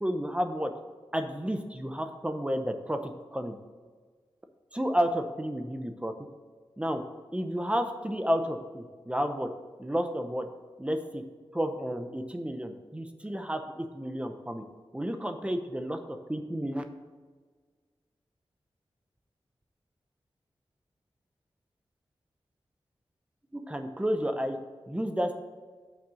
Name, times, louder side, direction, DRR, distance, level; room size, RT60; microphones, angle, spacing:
voice 1, 0.0-0.7 1.1-3.6 4.7-6.1 6.8-7.0 7.3-9.5 9.8-10.5 10.8-11.2 11.5-14.6 14.9-16.8 23.5-24.6 24.9-25.3, equal, 10° right, 6 dB, 0.7 m, -31 dB
6.1 x 4.3 x 6.2 m, 1.5 s
wide cardioid pair, 70°, 10 cm